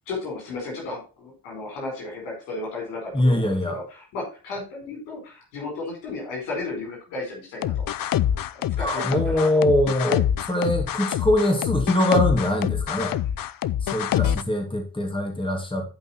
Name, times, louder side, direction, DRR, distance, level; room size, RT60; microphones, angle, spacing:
voice 1, 0.1-7.8 8.5-9.6 10.0-10.2, left 3 dB, 80° left, -2 dB, 5.0 m, -34 dB
voice 2, 3.1-3.8 8.8-10.2 10.5-13.2 13.8-15.9, left 1 dB, 10° left, 3 dB, 2.9 m, -23 dB
sound 1, 7.6-14.4, left 10 dB, 45° left, 0.6 m, -25 dB
11.0 x 5.5 x 4.4 m, 0.34 s
hypercardioid pair, 40°, 47 cm